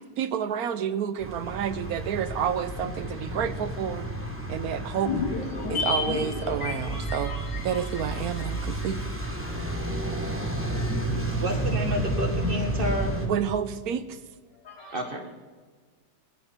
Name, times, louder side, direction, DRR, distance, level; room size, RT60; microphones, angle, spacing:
voice 1, 0.2-4.1 4.5-5.1 5.7-9.0 11.1-11.5 13.2-14.2, right 8 dB, 65° right, 13 dB, 1.2 m, -30 dB
sound 1, 1.2-13.3, right 1 dB, 5° right, 2.1 m, -31 dB
sound 2, 5.0-9.5 9.7-9.8, left 4 dB, 80° left, 2.4 m, -33 dB
voice 2, 11.4-13.2 14.9-15.2, equal, 30° right, 4 dB, 1.8 m, -30 dB
voice 3, 14.5-15.3, left 2 dB, 50° left, -1 dB, 4.3 m, -48 dB
20.5 x 10.0 x 4.6 m, 1.5 s
omnidirectional pair, 1.9 m